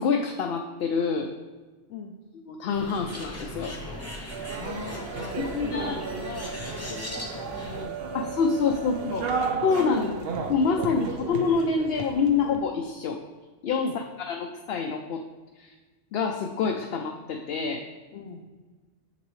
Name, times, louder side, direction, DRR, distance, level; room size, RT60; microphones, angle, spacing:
voice 1, 0.0-1.3 2.5-3.8 5.4-6.0 8.1-9.3 9.6-10.1 10.5-13.2 13.6-13.9 14.3-15.2 15.6-15.7 16.1-17.9, left 5 dB, 65° left, 2 dB, 0.7 m, -26 dB
Bird, 2.7-7.8, left 1 dB, 15° left, 0.9 m, -39 dB
sound 1, 4.3-12.6, right 4 dB, 60° right, 0.9 m, -34 dB
voice 2, 4.6-8.3 8.8-8.9 9.3-10.3 13.8-14.0 18.1-18.5, left 5 dB, 85° left, 1 dB, 0.9 m, -41 dB
7.6 x 6.7 x 3.1 m, 1.3 s
omnidirectional pair, 1.2 m